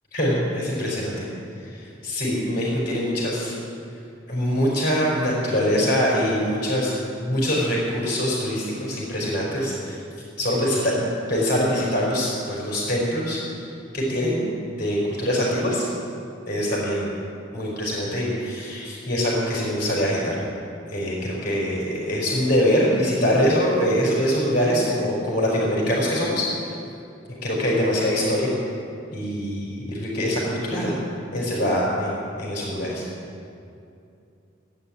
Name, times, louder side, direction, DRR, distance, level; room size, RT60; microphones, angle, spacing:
voice 1, 0.1-1.3 1.6-3.5 4.3-6.9 7.2-10.0 10.4-13.4 13.9-15.9 16.5-17.1 17.5-20.4 20.9-26.7 27.3-28.5 29.1-30.9 31.3-33.0, equal, 45° left, -5 dB, 4.8 m, -24 dB
17.0 x 9.6 x 8.8 m, 2.6 s
head